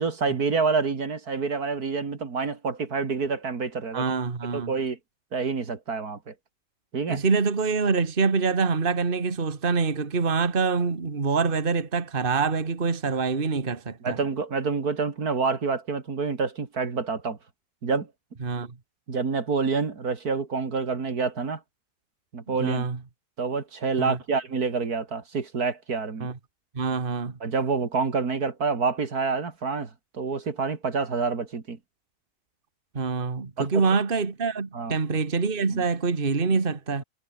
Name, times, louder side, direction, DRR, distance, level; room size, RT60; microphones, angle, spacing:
voice 1, 0.0-4.0 4.5-5.0 5.3-6.3 6.9-7.2 14.0-17.4 17.8-18.1 19.1-21.6 22.3-22.8 23.4-26.3 27.4-31.8 33.6-34.0 34.7-34.9 35.7-35.8, right 4 dB, 70° right, 3.0 m, -27 dB
voice 2, 3.9-4.7 7.1-14.2 18.4-18.7 22.5-23.0 24.0-24.2 26.2-26.3 26.7-27.4 32.9-37.0, right 4 dB, 35° right, 1.9 m, -25 dB
omnidirectional pair, 1.7 m